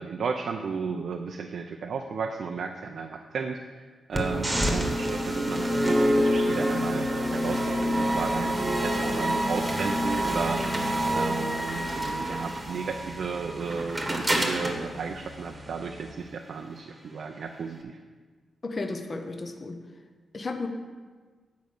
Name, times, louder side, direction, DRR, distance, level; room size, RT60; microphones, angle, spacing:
voice 1, 0.0-18.0, right 5 dB, 60° right, 3 dB, 0.5 m, -34 dB
sound 1, 4.1-16.1, equal, 10° right, 1.2 m, -27 dB
voice 2, 18.6-19.8 20.3-20.7, left 3 dB, 30° left, 6 dB, 0.7 m, -33 dB
9.2 x 5.2 x 6.6 m, 1.4 s
wide cardioid pair, 175°, 0 cm